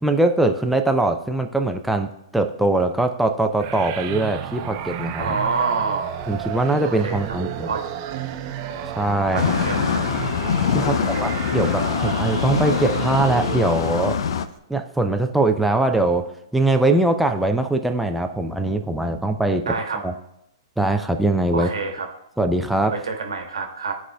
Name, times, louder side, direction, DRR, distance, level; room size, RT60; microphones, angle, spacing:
voice 1, 0.0-5.4 6.3-7.7 9.0-9.5 10.7-14.2 14.7-19.6 20.0-20.1 20.8-21.7 22.4-23.0, right 2 dB, ahead, 4 dB, 0.4 m, -22 dB
sound 1, 3.6-14.2, right 10 dB, 40° right, 0.6 m, -32 dB
voice 2, 5.2-6.2 6.8-7.4 7.6-7.9 9.3-10.0 10.8-11.2 19.6-20.0 21.5-22.1 22.9-23.9, right 4 dB, 80° right, 3 dB, 1.3 m, -27 dB
sound 2, 9.4-14.5, left 7 dB, 65° left, 0.5 m, -23 dB
14.5 x 4.8 x 2.3 m, 0.82 s
hypercardioid pair, 125°, 3 cm